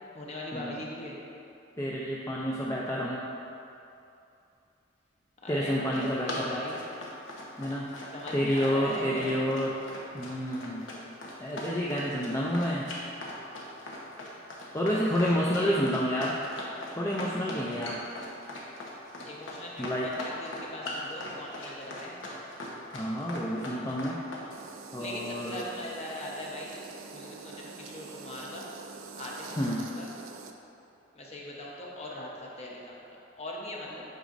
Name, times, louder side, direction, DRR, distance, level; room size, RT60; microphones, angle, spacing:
voice 1, 0.1-1.2 5.4-6.8 8.1-9.3 14.9-15.9 19.3-22.2 25.0-28.7 29.2-30.1 31.1-34.0, left 1 dB, 35° left, -3 dB, 0.9 m, -40 dB
voice 2, 1.8-3.2 5.5-6.6 7.6-7.9 8.3-9.7 10.1-10.8 11.4-12.9 14.7-16.4 17.0-18.0 19.8-20.1 22.9-24.2 24.9-25.6 29.5-29.9, equal, 15° left, -4 dB, 0.4 m, -29 dB
Run, 5.7-24.5, left 1 dB, 80° left, 1.0 m, -40 dB
sound 1, 24.5-30.5, right 4 dB, 90° right, 0.4 m, -45 dB
8.1 x 5.1 x 2.5 m, 2.7 s
head